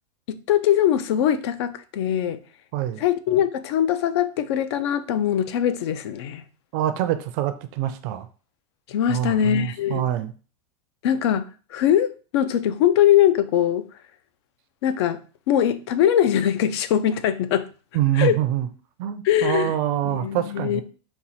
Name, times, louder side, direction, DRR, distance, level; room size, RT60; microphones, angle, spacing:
voice 1, 0.3-2.4 3.0-6.4 8.9-10.0 11.0-11.5 11.7-13.9 14.8-15.2 15.5-17.7 18.2-18.3 19.2-19.7 20.0-20.8, left 10 dB, 60° left, 0.4 m, -21 dB
voice 2, 2.7-3.0 6.7-8.3 9.1-10.3 17.9-18.7 19.0-20.8, right 12 dB, 40° right, 0.4 m, -25 dB
4.3 x 2.3 x 4.1 m
supercardioid pair, 160°, 16 cm